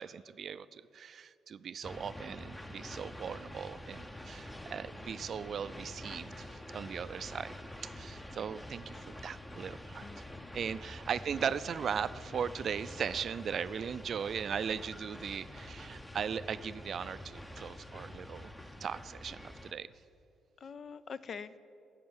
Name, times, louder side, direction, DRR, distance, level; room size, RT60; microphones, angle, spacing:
voice 1, 0.0-7.5 7.8-10.1 10.5-18.5 18.8-19.9, right 7 dB, 55° right, 15 dB, 0.4 m, -38 dB
sound 1, 1.8-19.7, left 1 dB, 10° left, 0.7 m, -47 dB
voice 2, 10.0-10.5 20.6-21.6, left 6 dB, 50° left, 15 dB, 0.5 m, -45 dB
12.5 x 7.2 x 9.6 m, 2.7 s
cardioid pair, 90°, 0 cm